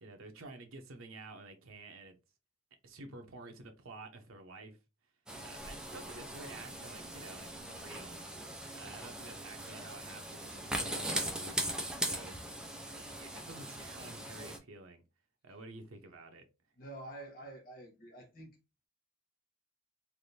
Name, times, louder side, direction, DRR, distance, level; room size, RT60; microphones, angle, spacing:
voice 1, 0.0-2.2 2.8-4.8 5.4-8.2 8.7-12.4 12.9-15.0 15.4-16.4, right 2 dB, 90° right, 0.7 m, -50 dB
sound 1, 5.3-14.6, right 1 dB, 5° right, 0.4 m, -40 dB
voice 2, 16.8-18.6, right 1 dB, 45° left, 1.0 m, -48 dB
3.4 x 2.5 x 2.7 m
head